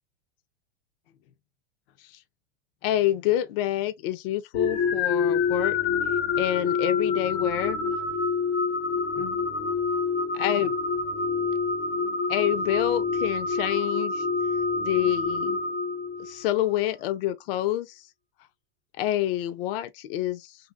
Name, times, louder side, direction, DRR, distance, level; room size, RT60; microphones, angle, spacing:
voice 1, 2.8-5.8 6.4-7.8 9.2-9.4 10.3-10.7 12.3-14.3 14.8-15.6 16.2-18.0 19.0-20.6, left 13 dB, 60° left, 0.5 m, -27 dB
sound 1, 4.5-16.5, left 4 dB, 90° left, 0.9 m, -27 dB
2.8 x 2.6 x 2.4 m
hypercardioid pair, 120°, 31 cm